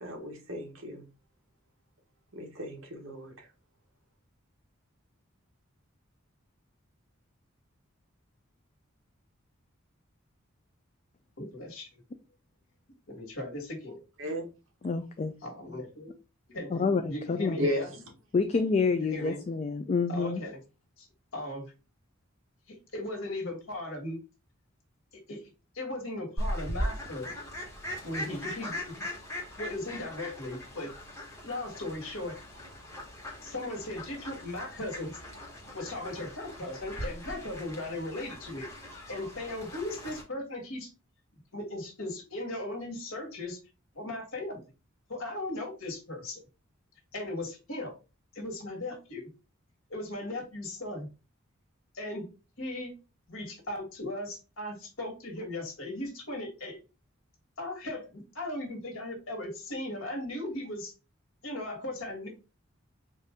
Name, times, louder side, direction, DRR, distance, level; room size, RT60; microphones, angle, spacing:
voice 1, 0.0-1.0 2.3-3.5 14.2-14.4 17.6-17.8, equal, 65° right, 1.1 m, -34 dB
voice 2, 11.4-11.9 13.1-14.0 15.4-16.1 16.5-17.9 19.1-19.4 20.1-20.6 21.0-21.1 21.3-21.7 22.7-24.2 25.1-25.4 25.7-27.3 28.0-29.0 29.6-30.9 31.4-32.3 33.4-35.1 35.7-38.7 39.1-40.9 41.5-43.6 43.9-44.6 45.1-46.4 47.1-48.0 48.3-49.3 49.9-51.1 51.9-52.3 52.6-52.9 53.3-56.8 57.6-60.9 61.4-62.3, left 1 dB, 75° left, 1.6 m, -37 dB
voice 3, 14.8-15.3 16.7-17.7 18.3-20.4, left 4 dB, 30° left, 0.3 m, -28 dB
Fowl, 26.4-40.2, equal, 15° left, 1.3 m, -39 dB
4.1 x 2.5 x 3.5 m
head